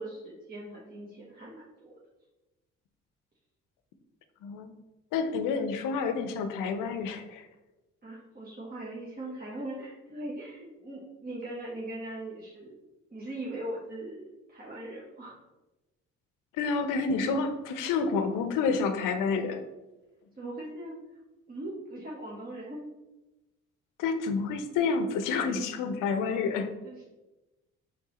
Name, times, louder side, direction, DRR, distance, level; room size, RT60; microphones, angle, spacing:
voice 1, 0.0-2.0 8.0-12.8 13.1-15.4 20.3-20.9 21.5-22.8 26.8-27.0, right 1 dB, 25° right, -5 dB, 1.0 m, -40 dB
voice 2, 4.4-4.7 5.1-7.5 16.5-19.6 24.0-26.7, left 4 dB, 65° left, 9 dB, 0.6 m, -29 dB
4.5 x 3.8 x 3.0 m, 1.1 s
hypercardioid pair, 50°, 35 cm